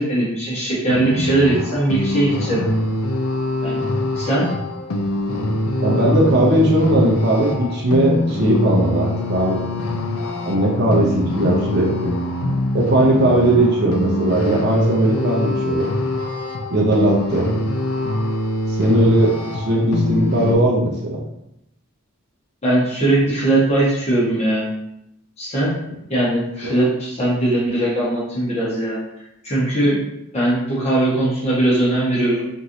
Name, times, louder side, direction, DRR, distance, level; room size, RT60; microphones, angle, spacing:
voice 1, 0.0-2.7 3.6-3.8 4.2-4.4 22.6-24.7 25.4-25.7 26.1-29.0 29.4-30.0 30.3-32.4, right 1 dB, 30° left, -7 dB, 1.0 m, -19 dB
sound 1, 0.9-20.6, left 1 dB, 85° left, 0.5 m, -24 dB
voice 2, 5.8-9.6 10.5-12.1 12.7-15.9 16.7-17.5 18.8-21.2 26.6-26.7, right 1 dB, 45° right, -1 dB, 0.5 m, -18 dB
3.0 x 2.5 x 2.7 m, 0.82 s
head